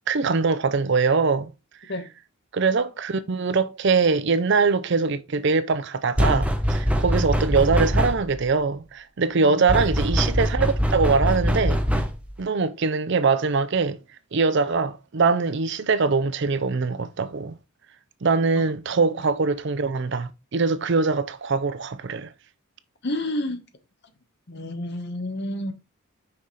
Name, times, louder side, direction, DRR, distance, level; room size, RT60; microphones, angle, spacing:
voice 1, 0.1-1.5 2.5-11.8 12.4-14.0 14.3-17.6 18.2-22.3, right 4 dB, 50° right, 0.5 m, -22 dB
sound 1, 6.2-8.4 9.7-12.4, equal, 5° right, 0.7 m, -23 dB
voice 2, 23.0-23.7 24.5-25.7, left 1 dB, 50° left, 1.1 m, -29 dB
5.8 x 4.8 x 4.0 m
head